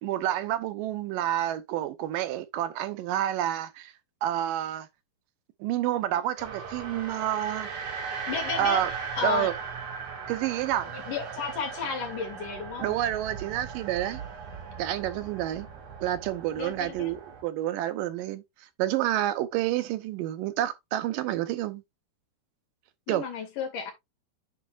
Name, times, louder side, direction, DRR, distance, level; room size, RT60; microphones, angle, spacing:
voice 1, 0.0-3.9 4.2-4.9 5.6-7.7 8.6-8.9 9.2-9.5 10.3-10.9 12.8-14.2 14.8-15.7 16.0-18.4 18.8-21.8 23.1-23.2, right 12 dB, 90° right, 2.5 m, -29 dB
sound 1, 6.4-17.4, right 6 dB, 60° right, 3.5 m, -38 dB
voice 2, 8.3-9.5 10.9-12.9 16.6-17.1 23.1-23.9, left 6 dB, 70° left, 3.8 m, -33 dB
8.9 x 5.6 x 2.5 m
omnidirectional pair, 3.9 m